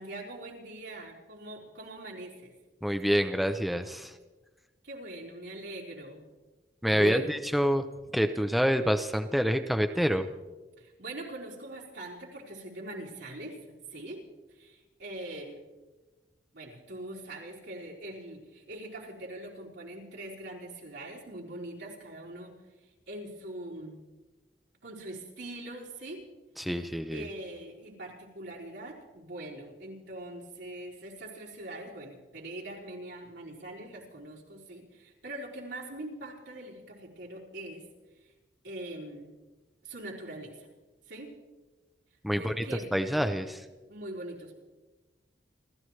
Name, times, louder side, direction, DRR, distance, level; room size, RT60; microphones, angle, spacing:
voice 1, 0.0-2.5 4.8-6.2 6.8-7.4 10.8-13.6 13.9-15.6 16.5-22.6 23.1-24.0 24.8-26.3 26.6-26.7 27.1-37.8 38.2-38.3 38.6-39.3 39.8-40.7 41.1-41.3 42.3-42.9 43.9-44.6, right 1 dB, 80° right, -4 dB, 4.2 m, -42 dB
voice 2, 2.8-4.1 6.8-7.9 8.1-10.3 26.6-27.2 42.2-42.6 42.9-43.6, equal, ahead, 7 dB, 0.6 m, -27 dB
29.0 x 14.0 x 3.2 m, 1.2 s
head